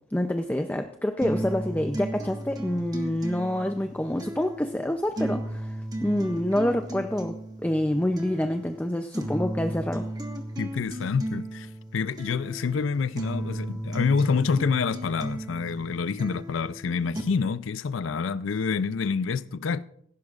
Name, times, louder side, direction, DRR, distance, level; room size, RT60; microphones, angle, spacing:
voice 1, 0.1-10.1, left 1 dB, 10° left, 0.5 m, -27 dB
sound 1, 1.2-17.2, right 1 dB, 20° right, 1.4 m, -35 dB
voice 2, 10.6-19.8, left 5 dB, 70° left, 0.4 m, -27 dB
17.5 x 15.5 x 2.5 m
head